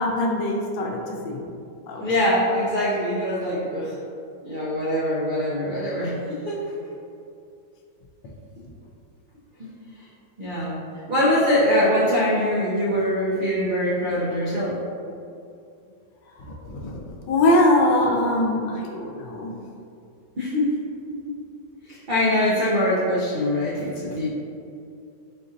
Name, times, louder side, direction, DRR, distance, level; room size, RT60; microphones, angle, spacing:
voice 1, 0.0-1.5 1.9-2.1 16.4-17.0 17.3-19.6, left 1 dB, 80° left, 1 dB, 1.3 m, -22 dB
voice 2, 2.0-4.0 4.4-6.7 9.6-9.7 10.4-10.8 11.1-14.8 20.4-20.8 21.1-21.2 21.9-24.3, left 1 dB, 80° right, -8 dB, 0.4 m, -23 dB
4.4 x 2.6 x 3.8 m, 2.5 s
omnidirectional pair, 1.9 m